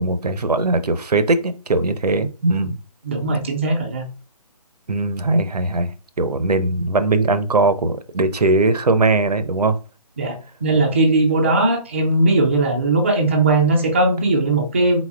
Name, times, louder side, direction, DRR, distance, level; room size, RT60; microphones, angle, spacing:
voice 1, 0.0-2.8 4.9-9.8, right 2 dB, 80° right, 0.6 m, -20 dB
voice 2, 3.0-4.1 10.2-15.0, right 2 dB, 20° right, 0.4 m, -18 dB
4.2 x 3.9 x 2.3 m
figure-of-eight pair, 155°, 20 cm